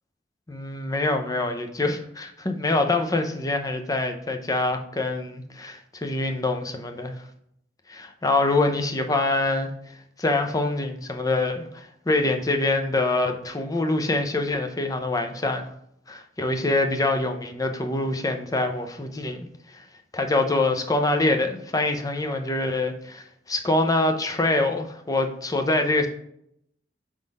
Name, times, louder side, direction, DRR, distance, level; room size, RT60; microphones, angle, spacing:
voice 1, 0.5-7.2 7.9-9.7 10.2-15.7 16.1-19.5 19.7-19.8 20.1-26.1, left 2 dB, 20° left, 5 dB, 0.6 m, -25 dB
4.7 x 3.7 x 5.3 m, 0.73 s
head